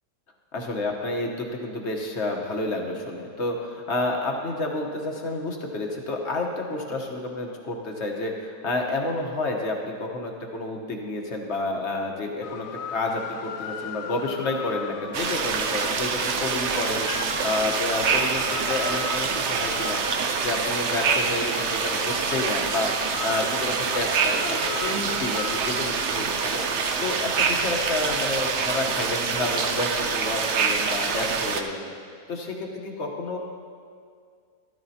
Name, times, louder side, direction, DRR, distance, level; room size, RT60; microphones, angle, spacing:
voice 1, 0.5-31.9 32.3-33.4, left 2 dB, 45° left, 1 dB, 1.2 m, -30 dB
sound 1, 12.4-26.3, left 7 dB, 65° left, 0.9 m, -38 dB
sound 2, 15.1-31.6, right 5 dB, 60° right, 0.7 m, -26 dB
14.0 x 13.0 x 2.8 m, 2.2 s
omnidirectional pair, 1.8 m